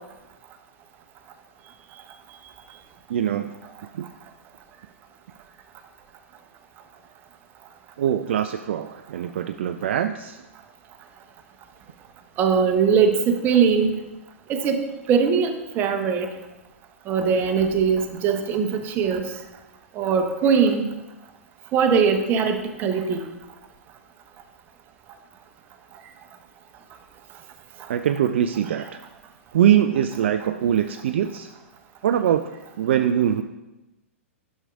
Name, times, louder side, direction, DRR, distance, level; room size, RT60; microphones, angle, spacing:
voice 1, 3.1-3.5 3.9-4.1 8.0-10.4 27.9-29.0 29.5-31.5 32.0-32.5 32.8-33.4, right 10 dB, 55° right, 7 dB, 0.3 m, -22 dB
voice 2, 12.4-14.0 14.5-16.3 17.1-19.3 20.0-20.9 21.7-23.2, right 6 dB, 25° right, 5 dB, 0.8 m, -21 dB
12.0 x 6.4 x 2.4 m, 1.0 s
figure-of-eight pair, 105°, 7 cm